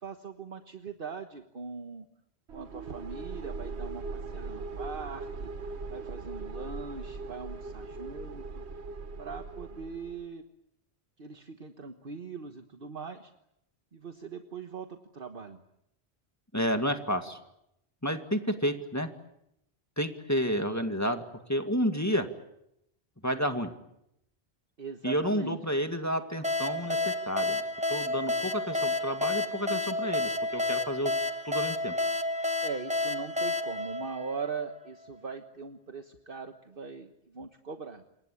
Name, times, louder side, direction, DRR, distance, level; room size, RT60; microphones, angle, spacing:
voice 1, 0.0-2.1 2.5-5.5 5.9-8.6 9.2-10.4 11.2-13.3 13.9-15.6 24.8-25.6 32.6-38.0, right 5 dB, 55° right, 6 dB, 1.5 m, -41 dB
sound 1, 2.5-10.3, right 4 dB, 80° right, 1.5 m, -40 dB
voice 2, 16.5-17.4 18.0-19.1 20.0-21.2 21.5-22.3 23.2-23.7 25.0-27.6 27.9-31.1 31.4-31.9, equal, 15° left, 6 dB, 2.0 m, -30 dB
sound 2, 26.4-34.9, left 2 dB, 5° right, 1.0 m, -30 dB
27.5 x 23.5 x 8.4 m, 0.81 s
omnidirectional pair, 1.1 m